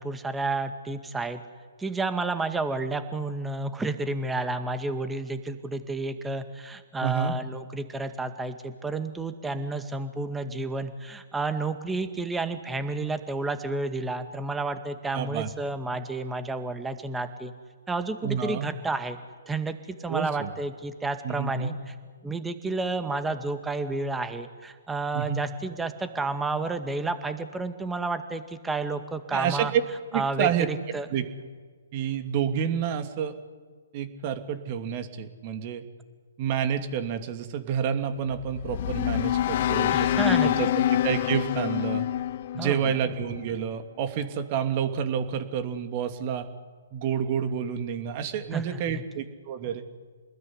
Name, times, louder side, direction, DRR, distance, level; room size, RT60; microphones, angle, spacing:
voice 1, 0.0-1.4 1.8-17.5 17.9-19.2 19.5-21.9 22.2-29.7 30.1-31.1 39.9-40.8 42.6-42.9 48.5-49.0, right 3 dB, 10° right, 9 dB, 2.1 m, -31 dB
voice 2, 7.0-7.3 15.1-15.5 18.2-18.7 20.1-20.5 21.2-21.7 25.1-25.4 29.3-29.8 30.1-30.7 31.1-31.2 31.9-33.3 33.9-35.8 36.4-42.1 42.5-46.5 46.9-49.8, right 8 dB, 35° right, 8 dB, 2.8 m, -29 dB
sound 1, 38.3-43.5, left 12 dB, 45° left, 0.8 m, -26 dB
29.0 x 20.5 x 9.9 m, 1.6 s
figure-of-eight pair, 130°, 0 cm